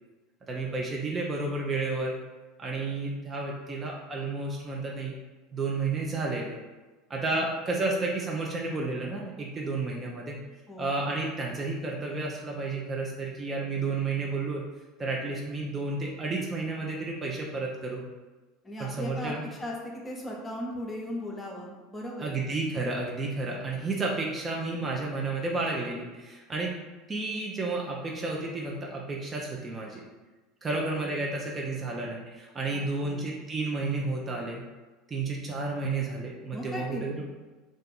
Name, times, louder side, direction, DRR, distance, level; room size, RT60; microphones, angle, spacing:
voice 1, 0.5-2.2 2.6-5.1 5.5-6.6 7.1-10.4 10.8-14.6 15.0-18.0 18.8-19.5 22.2-26.8 27.1-30.0 30.6-34.6 35.1-37.2, right 3 dB, 25° right, -1 dB, 0.5 m, -31 dB
voice 2, 10.7-11.0 18.6-19.8 20.0-22.4 30.7-31.3 32.7-33.2 36.5-37.0, left 1 dB, 15° left, -2 dB, 0.8 m, -38 dB
2.5 x 2.4 x 3.9 m, 1.2 s
figure-of-eight pair, 70°, 0 cm